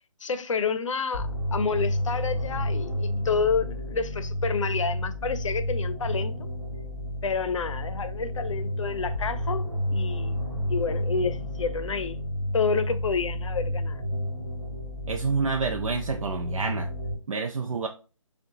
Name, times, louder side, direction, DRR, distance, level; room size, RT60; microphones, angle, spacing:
voice 1, 0.2-6.3 7.2-10.4 10.7-12.2 12.5-14.0, left 5 dB, 65° left, 0.6 m, -29 dB
sound 1, 1.1-17.1, left 1 dB, 10° left, 1.2 m, -31 dB
voice 2, 15.1-16.9 17.3-17.9, right 4 dB, 75° right, 0.5 m, -28 dB
6.3 x 2.3 x 2.7 m
hypercardioid pair, 160°, 17 cm